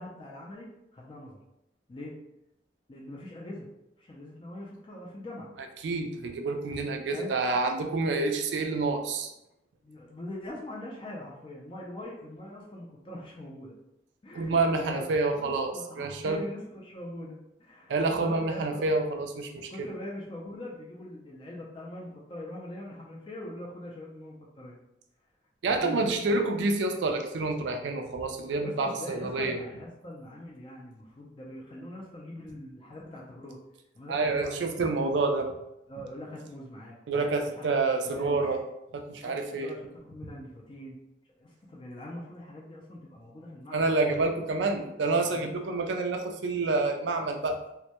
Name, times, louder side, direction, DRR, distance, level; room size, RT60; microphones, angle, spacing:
voice 1, 0.0-1.4 1.9-2.1 2.9-3.7 4.0-5.5 7.1-7.3 9.8-13.8 14.2-15.1 15.3-18.8 19.6-24.8 25.7-26.2 28.6-33.6 33.9-34.9 35.9-37.2 37.5-37.7 38.0-38.6 39.2-41.0 41.4-43.9 45.3-45.8, left 1 dB, 30° left, -3 dB, 0.3 m, -42 dB
voice 2, 5.8-9.3 14.3-16.4 17.9-19.9 25.6-29.6 34.1-35.5 37.1-38.6 38.9-39.7 43.7-47.6, right 3 dB, 75° right, 5 dB, 0.3 m, -28 dB
2.1 x 2.1 x 2.8 m, 0.86 s
head